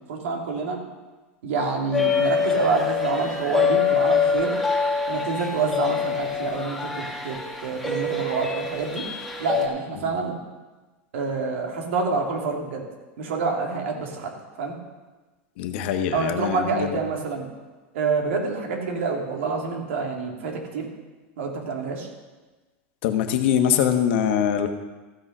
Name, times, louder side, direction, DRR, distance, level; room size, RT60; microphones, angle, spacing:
voice 1, 0.1-0.8 1.4-4.5 5.1-7.4 7.6-9.0 9.4-10.4 11.1-12.8 13.2-14.3 14.6-14.8 16.1-17.5 17.9-20.9 21.4-22.1, right 4 dB, 90° right, 1 dB, 2.5 m, -27 dB
sound 1, 1.9-9.7, left 5 dB, ahead, 1.8 m, -25 dB
voice 2, 15.6-17.0 23.0-24.7, left 9 dB, 65° left, 7 dB, 1.2 m, -23 dB
14.5 x 6.4 x 5.5 m, 1.2 s
supercardioid pair, 150°, 7 cm